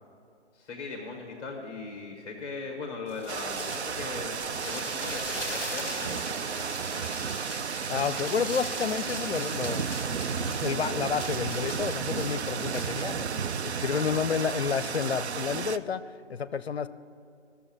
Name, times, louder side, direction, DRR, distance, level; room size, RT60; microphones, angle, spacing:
voice 1, 0.5-7.0 13.7-14.1, left 4 dB, 10° left, 1 dB, 1.1 m, -39 dB
sound 1, 3.1-13.2, equal, 25° right, 2.5 m, -40 dB
sound 2, 3.3-15.8, right 6 dB, 65° right, 0.5 m, -33 dB
voice 2, 7.9-9.9 10.1-13.3 13.6-16.0 16.3-16.9, left 6 dB, 60° left, 15 dB, 0.5 m, -30 dB
14.0 x 7.0 x 7.2 m, 2.4 s
figure-of-eight pair, 155°, 35 cm